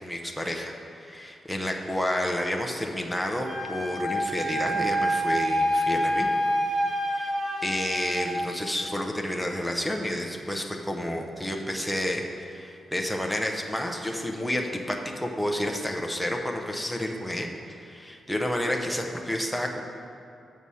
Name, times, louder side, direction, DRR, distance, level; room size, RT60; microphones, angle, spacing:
voice 1, 0.0-6.3 6.6-19.8, left 1 dB, ahead, 2 dB, 0.6 m, -30 dB
Wind instrument woodwind instrument, 3.4-8.4, equal, 50° right, 2.0 m, -27 dB
6.8 x 5.5 x 6.2 m, 2.6 s
wide cardioid pair, 130°, 0 cm